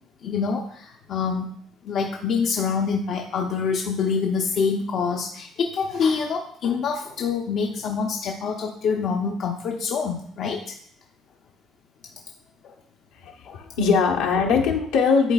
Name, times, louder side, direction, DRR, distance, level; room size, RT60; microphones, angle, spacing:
voice 1, 0.2-1.5 1.8-10.7 12.6-12.7 13.5-13.6, left 5 dB, 60° left, 1 dB, 0.6 m, -26 dB
voice 2, 13.2-15.3, left 5 dB, 80° left, -1 dB, 1.0 m, -21 dB
11.0 x 3.9 x 2.3 m, 0.65 s
supercardioid pair, 65°, 0 cm